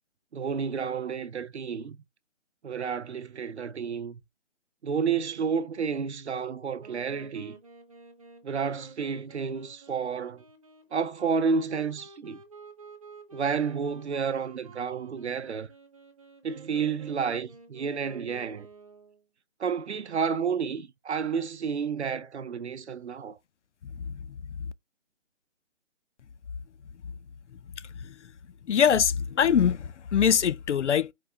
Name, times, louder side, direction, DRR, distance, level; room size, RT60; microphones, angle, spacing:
voice 1, 0.3-2.0 2.6-4.2 4.8-7.5 8.4-10.4 10.9-12.4 13.3-15.7 16.4-18.7 19.6-23.4, right 6 dB, 60° right, 0.7 m, -30 dB
Wind instrument woodwind instrument, 6.8-19.2, right 4 dB, 30° right, 0.7 m, -51 dB
voice 2, 28.7-31.1, left 8 dB, 70° left, 0.5 m, -23 dB
4.7 x 2.4 x 3.7 m
figure-of-eight pair, 160°, 37 cm